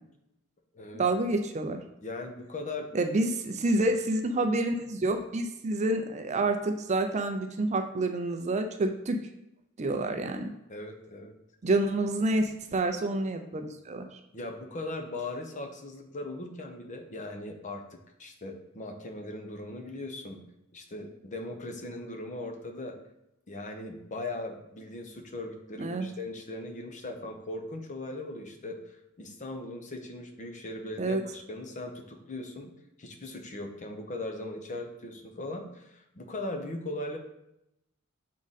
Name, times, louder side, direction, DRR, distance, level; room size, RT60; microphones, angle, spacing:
voice 1, 0.9-1.8 2.9-9.2 9.8-10.5 11.6-14.2 25.8-26.1 31.0-31.2, right 2 dB, 30° right, 6 dB, 0.5 m, -28 dB
voice 2, 2.0-2.9 10.7-11.3 14.3-20.4 20.7-23.0 23.5-32.7 33.0-37.2, left 2 dB, 35° left, 5 dB, 0.7 m, -39 dB
6.2 x 3.8 x 4.1 m, 0.84 s
head